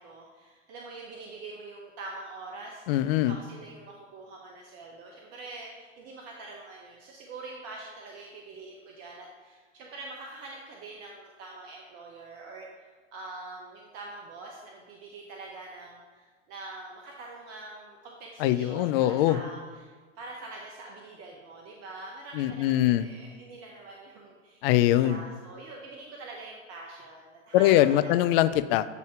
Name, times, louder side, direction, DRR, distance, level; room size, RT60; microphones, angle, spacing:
voice 1, 0.0-2.8 3.3-19.9 20.2-28.2, right 3 dB, 45° right, 0 dB, 0.8 m, -44 dB
voice 2, 2.9-3.4 18.4-19.4 22.4-23.1 24.6-25.2 27.5-28.8, left 13 dB, 55° left, 13 dB, 0.4 m, -22 dB
8.1 x 2.7 x 4.7 m, 1.4 s
hypercardioid pair, 90°, 35 cm